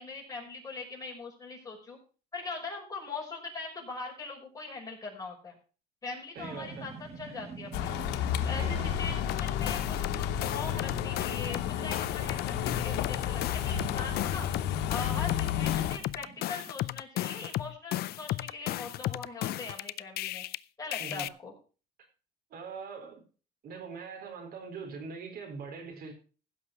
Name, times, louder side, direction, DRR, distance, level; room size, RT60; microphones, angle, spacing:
voice 1, 0.0-2.0 2.3-5.6 6.0-8.0 8.5-14.5 14.9-20.4 20.8-21.5, left 4 dB, 20° left, 5.7 m, -41 dB
voice 2, 6.3-6.9 8.6-8.9 21.0-21.3 22.5-23.2 23.6-26.1, right 4 dB, 65° right, 4.2 m, -42 dB
sound 1, 6.4-16.7, right 5 dB, 40° right, 2.6 m, -47 dB
sound 2, 7.7-16.0, left 10 dB, 90° left, 1.1 m, -31 dB
sound 3, 9.3-11.6 11.9-20.6 20.9-21.3, left 16 dB, 70° left, 0.5 m, -35 dB
15.5 x 6.4 x 5.8 m
cardioid pair, 110°, 17 cm